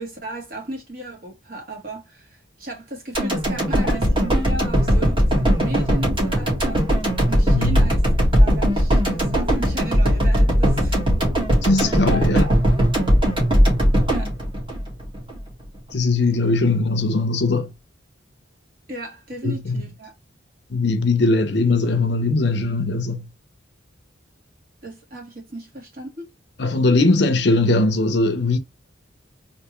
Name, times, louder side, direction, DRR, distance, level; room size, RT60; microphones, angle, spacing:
voice 1, 0.0-6.9 7.3-8.0 8.4-11.0 12.0-12.6 12.9-13.0 14.1-14.3 16.3-16.6 18.9-20.1 24.8-26.3, right 1 dB, 45° right, 1.7 m, -34 dB
sound 1, 3.1-15.4 15.7-15.8, equal, 25° right, 1.5 m, -19 dB
voice 2, 11.6-12.5 15.9-17.7 19.4-19.8 20.7-23.3 26.6-28.6, left 2 dB, 60° left, 0.7 m, -20 dB
3.4 x 2.8 x 3.0 m
head